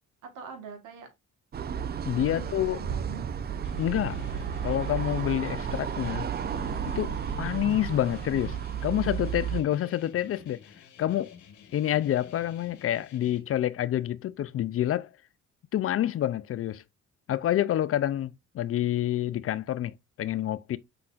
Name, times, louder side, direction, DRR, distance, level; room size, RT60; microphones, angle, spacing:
voice 1, 0.2-1.1 2.3-3.5 10.2-10.3, right 6 dB, 90° right, 1.4 m, -44 dB
sound 1, 1.5-9.6, right 8 dB, 35° right, 0.4 m, -33 dB
voice 2, 2.1-2.8 3.8-4.2 4.6-6.3 7.0-10.6 11.0-11.4 11.7-15.1 15.7-16.8 17.3-20.8, left 12 dB, 50° left, 0.4 m, -28 dB
sound 2, 3.6-13.4, left 7 dB, 70° left, 1.3 m, -52 dB
5.7 x 3.8 x 2.4 m
cardioid pair, 90°, 30 cm